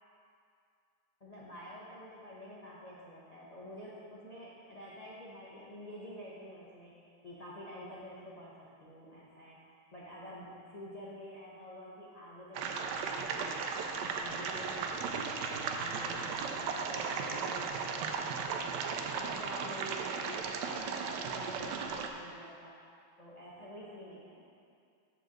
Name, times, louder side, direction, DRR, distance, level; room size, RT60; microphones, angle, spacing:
voice 1, 1.2-15.2 15.5-18.8 19.1-22.8 23.2-24.4, equal, 65° left, -7 dB, 0.4 m, -49 dB
sound 1, 12.5-22.1, right 5 dB, 75° right, 1.0 m, -36 dB
7.0 x 4.4 x 6.4 m, 2.4 s
omnidirectional pair, 2.3 m